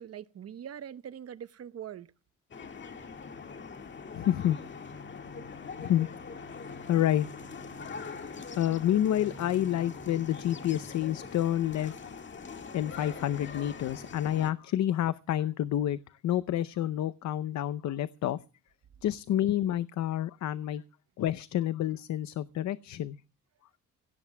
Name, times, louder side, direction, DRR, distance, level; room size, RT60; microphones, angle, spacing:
voice 1, 0.0-2.1, right 9 dB, 55° right, 0.9 m, -42 dB
sound 1, 2.5-14.5, left 5 dB, 40° left, 1.8 m, -43 dB
voice 2, 4.1-4.6 5.8-6.2 6.9-7.3 8.6-12.0 12.7-18.4 19.0-20.8 21.2-23.2, left 12 dB, 65° left, 0.7 m, -29 dB
26.0 x 17.0 x 2.2 m
cardioid pair, 90°, 30 cm